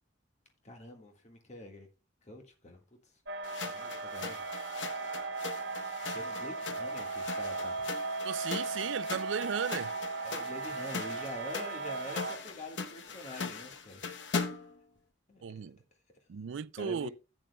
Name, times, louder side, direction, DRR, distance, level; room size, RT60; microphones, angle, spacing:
voice 1, 0.6-1.9 2.2-3.0 3.6-4.4 6.0-7.8 10.2-14.0 15.3-15.7 16.7-17.1, equal, 40° left, 1.7 m, -45 dB
sound 1, 3.3-12.4, right 3 dB, 65° right, 0.9 m, -37 dB
sound 2, 3.4-14.8, left 5 dB, 75° left, 0.9 m, -41 dB
voice 2, 8.2-9.9 15.4-15.8 16.3-17.1, right 7 dB, 80° right, 0.4 m, -35 dB
13.5 x 9.0 x 2.2 m
head